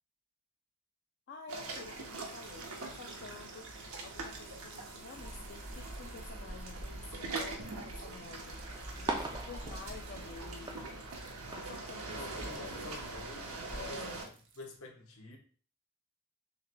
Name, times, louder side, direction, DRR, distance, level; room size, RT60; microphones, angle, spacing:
voice 1, 1.3-3.7 4.0-10.9 11.5-13.1 13.7-14.3, left 4 dB, 50° left, 0.3 m, -50 dB
sound 1, 1.5-14.3, right 2 dB, 75° right, 0.9 m, -43 dB
sound 2, 2.1-14.8, right 4 dB, 55° right, 0.7 m, -57 dB
sound 3, 8.5-13.8, right 2 dB, 20° right, 0.4 m, -43 dB
voice 2, 12.1-14.3 14.6-15.4, left 3 dB, 75° left, 0.9 m, -48 dB
6.5 x 3.0 x 2.2 m
head